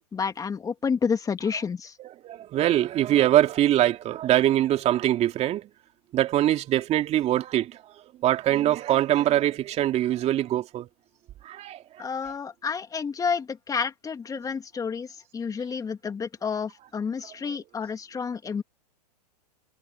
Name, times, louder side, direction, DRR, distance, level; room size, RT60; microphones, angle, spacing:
voice 1, 0.1-1.9 12.0-15.1 15.3-18.6, left 6 dB, 15° left, 2.7 m, -30 dB
voice 2, 2.0-5.7 6.1-7.8 8.2-10.9 11.4-12.1 17.5-17.6, right 13 dB, 30° right, 2.6 m, -23 dB
hypercardioid pair, 110°, 21 cm